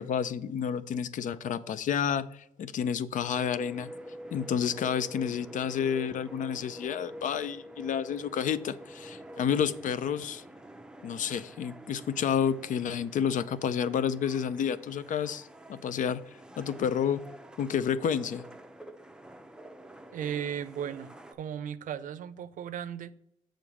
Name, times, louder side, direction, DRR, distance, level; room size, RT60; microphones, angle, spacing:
voice 1, 0.0-3.9 4.3-10.4 11.0-16.2 16.6-17.2 17.6-18.4, left 8 dB, 70° left, 0.5 m, -30 dB
sound 1, 3.1-21.3, equal, 5° right, 0.6 m, -47 dB
voice 2, 20.1-23.1, right 9 dB, 70° right, 0.5 m, -36 dB
7.0 x 3.8 x 6.1 m
cardioid pair, 90°, 14 cm